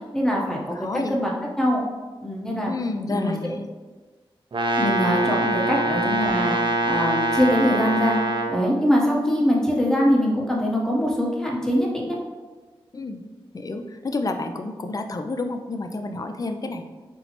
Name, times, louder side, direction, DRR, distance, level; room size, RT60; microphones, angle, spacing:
voice 1, 0.1-1.8 2.2-2.7 3.1-3.3 4.8-6.5 6.8-8.2 8.5-12.2, equal, 5° left, -2 dB, 0.8 m, -23 dB
voice 2, 0.8-1.2 2.7-3.7 5.4-5.6 12.9-13.2 13.5-16.8, left 3 dB, 40° left, 6 dB, 0.3 m, -30 dB
Brass instrument, 4.5-8.6, right 2 dB, 60° right, 0.5 m, -23 dB
4.2 x 2.0 x 2.8 m, 1.3 s
cardioid pair, 45°, 10 cm